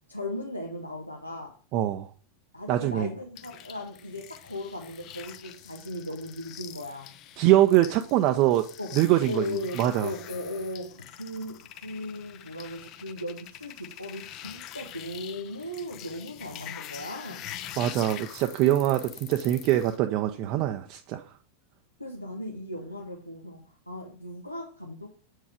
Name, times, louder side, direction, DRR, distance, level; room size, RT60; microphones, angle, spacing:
voice 1, 0.1-1.6 2.5-7.1 8.8-9.0 9.3-17.4 22.0-25.1, left 1 dB, 90° left, 1.0 m, -37 dB
voice 2, 1.7-2.1 2.7-3.1 7.4-8.7 8.9-9.4 9.8-10.1 17.8-21.2, right 13 dB, 40° right, 0.5 m, -23 dB
sound 1, 3.4-20.0, left 11 dB, 35° left, 0.6 m, -45 dB
7.9 x 4.7 x 4.9 m
figure-of-eight pair, 90°, 0 cm